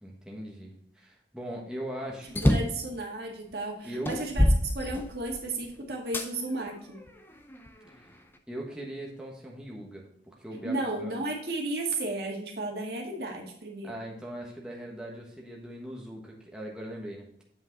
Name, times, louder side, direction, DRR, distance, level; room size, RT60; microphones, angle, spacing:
voice 1, 0.0-2.4 3.8-4.2 8.0-8.1 8.5-11.1 13.8-17.3, right 1 dB, 5° right, -2 dB, 1.2 m, -40 dB
sound 1, 2.3-2.9 3.5-3.6 4.1-5.5 6.1-6.3 7.0-8.1, left 1 dB, 10° left, 0.5 m, -25 dB
voice 2, 2.4-4.5 4.7-7.0 10.6-13.9, right 2 dB, 60° right, 0 dB, 1.8 m, -33 dB
8.5 x 5.2 x 3.9 m, 0.72 s
head